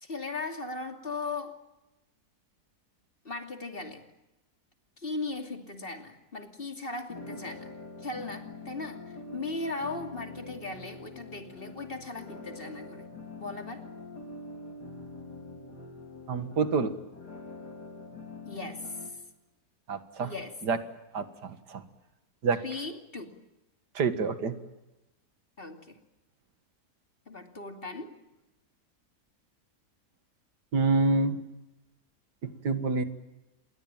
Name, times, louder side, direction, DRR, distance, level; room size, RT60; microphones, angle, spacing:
voice 1, 0.0-1.5 3.2-4.0 5.0-7.7 8.0-9.0 9.3-13.0 13.4-13.8 18.5-19.2 20.2-20.5 22.6-23.3 25.6-26.0 27.3-28.1, left 3 dB, 35° left, 6 dB, 2.8 m, -38 dB
sound 1, 7.1-19.1, left 3 dB, 75° left, 4.0 m, -44 dB
voice 2, 16.3-16.9 19.9-20.3 20.6-20.8 21.1-21.8 22.4-22.6 24.0-24.5 30.7-31.4 32.4-33.0, right 4 dB, 85° right, 11 dB, 2.3 m, -27 dB
28.0 x 22.0 x 8.9 m, 0.98 s
omnidirectional pair, 1.7 m